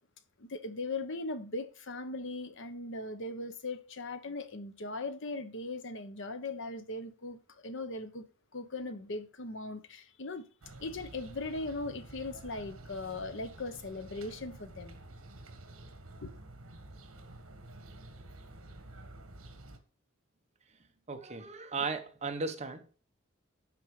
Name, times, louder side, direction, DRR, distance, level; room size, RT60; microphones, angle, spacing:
voice 1, 0.4-8.3 8.5-10.4 10.8-14.9 16.2-16.3, left 2 dB, 60° left, 1.0 m, -39 dB
sound 1, 10.6-19.8, right 2 dB, 75° right, 1.6 m, -50 dB
voice 2, 21.1-22.8, right 4 dB, 30° right, 1.0 m, -36 dB
12.0 x 4.6 x 4.9 m
head